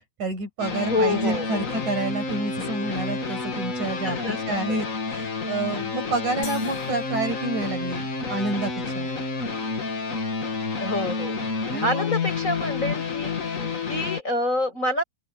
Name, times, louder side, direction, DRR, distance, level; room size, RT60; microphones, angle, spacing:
voice 1, 0.2-4.2 4.5-9.1 11.7-12.1, right 2 dB, 45° right, 8.6 m, -29 dB
sound 1, 0.6-14.2, left 4 dB, 40° left, 1.1 m, -29 dB
voice 2, 0.8-1.7 4.0-4.8 10.8-11.4 11.8-13.4 13.9-15.0, left 1 dB, 20° left, 7.3 m, -27 dB
sound 2, 6.4-8.4, left 4 dB, 80° left, 8.1 m, -44 dB
open air
omnidirectional pair, 4.5 m